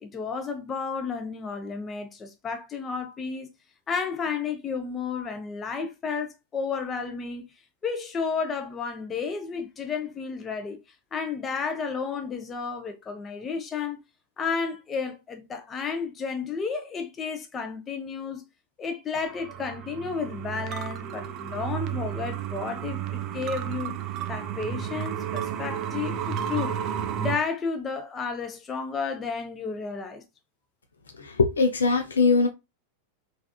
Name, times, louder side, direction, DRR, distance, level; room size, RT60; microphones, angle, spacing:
voice 1, 0.0-3.5 3.9-7.4 7.8-10.8 11.1-14.0 14.4-18.4 18.8-24.0 24.3-26.8 27.2-30.2, left 5 dB, 20° left, 0.5 m, -32 dB
sound 1, 19.2-27.4, right 9 dB, 35° right, 0.4 m, -32 dB
voice 2, 31.2-32.5, left 4 dB, 70° left, 0.6 m, -21 dB
3.4 x 2.4 x 2.3 m
figure-of-eight pair, 90°, 0 cm